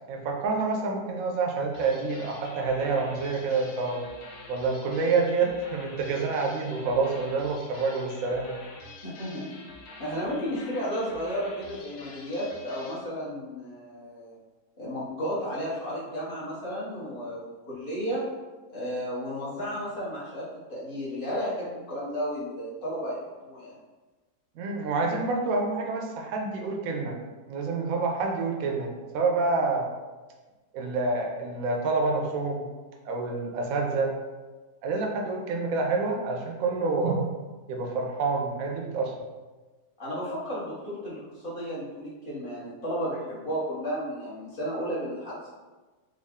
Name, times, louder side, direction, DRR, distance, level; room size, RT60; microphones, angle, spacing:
voice 1, 0.0-4.1 4.5-8.6 24.6-27.2 27.5-29.9 30.7-32.6 33.1-34.1 34.8-37.3 37.7-39.1, right 3 dB, 65° right, 1 dB, 1.0 m, -28 dB
sound 1, 1.7-13.0, left 3 dB, 85° left, 1.2 m, -47 dB
voice 2, 9.0-9.5 10.0-14.4 14.8-18.2 18.7-23.8 40.0-45.5, equal, 40° left, -8 dB, 1.0 m, -33 dB
3.6 x 2.3 x 3.5 m, 1.3 s
omnidirectional pair, 1.7 m